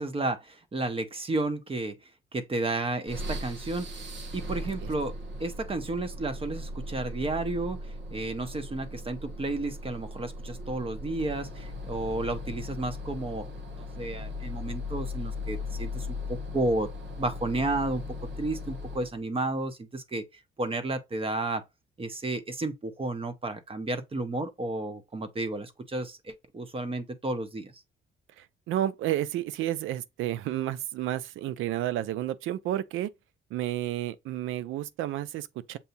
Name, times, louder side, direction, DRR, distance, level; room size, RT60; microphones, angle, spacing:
voice 1, 0.0-2.0 2.3-3.9 4.3-7.8 8.1-13.5 13.8-16.9 17.2-18.0 18.4-20.2 20.6-21.6 22.0-27.7, right 2 dB, 30° right, 0.9 m, -32 dB
sound 1, 3.1-19.2, left 2 dB, 65° right, 1.4 m, -38 dB
voice 2, 28.4-33.1 33.5-35.8, right 13 dB, 85° right, 0.5 m, -31 dB
6.9 x 2.7 x 2.6 m
cardioid pair, 90°, 20 cm